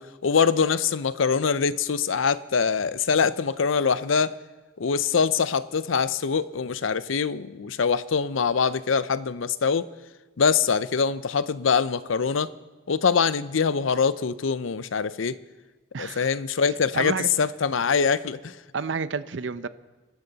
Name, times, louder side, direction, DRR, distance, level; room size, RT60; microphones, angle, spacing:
voice 1, 0.0-4.3 4.8-9.9 10.4-12.5 12.9-15.4 16.0-18.5, left 6 dB, 80° left, 16 dB, 0.6 m, -24 dB
voice 2, 15.9-16.3 16.9-17.3 18.7-19.7, right 5 dB, 65° right, 14 dB, 0.6 m, -30 dB
23.5 x 13.0 x 4.1 m, 1.2 s
head